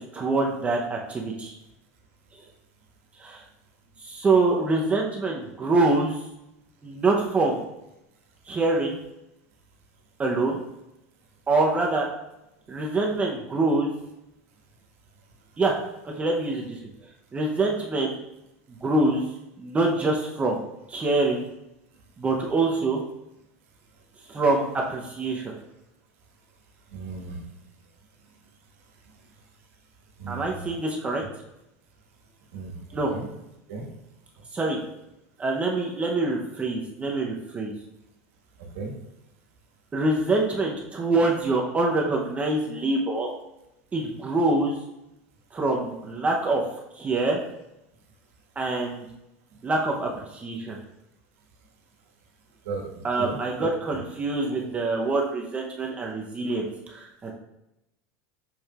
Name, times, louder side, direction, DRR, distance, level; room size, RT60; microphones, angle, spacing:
voice 1, 0.0-1.6 3.2-3.4 4.0-6.2 6.8-7.6 8.5-9.0 10.2-10.6 11.5-12.1 12.7-13.9 15.6-15.7 16.2-16.8 17.3-18.1 18.7-19.2 19.6-20.6 20.9-21.4 22.2-23.0 24.3-25.6 30.3-31.2 32.9-33.1 34.5-34.8 35.4-37.7 39.9-43.3 43.9-44.7 45.5-46.6 47.0-47.4 48.6-49.0 49.6-50.8 53.0-57.3, right 2 dB, 20° right, 0 dB, 0.8 m, -25 dB
voice 2, 26.9-27.5 30.2-30.7 32.5-32.8 33.1-33.3 33.7-33.9 38.6-38.9 52.6-54.0, right 4 dB, 85° right, 0 dB, 1.6 m, -35 dB
6.5 x 6.1 x 2.4 m, 0.87 s
supercardioid pair, 135°, 7 cm